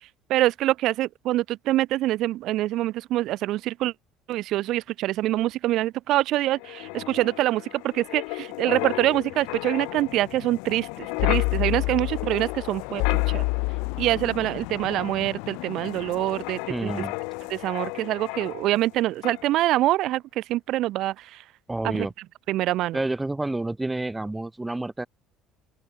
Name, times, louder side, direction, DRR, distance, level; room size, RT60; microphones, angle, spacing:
voice 1, 0.3-3.9 4.3-13.4 14.0-16.9 17.5-21.4 21.8-22.1 22.5-23.0, right 15 dB, 55° right, 0.3 m, -25 dB
Wind, 6.5-18.9 19.2-19.5, left 33 dB, 90° left, 0.9 m, -30 dB
voice 2, 16.7-17.2 21.7-22.1 22.9-25.1, right 2 dB, 10° right, 1.8 m, -29 dB
open air
cardioid pair, 150°, 0 cm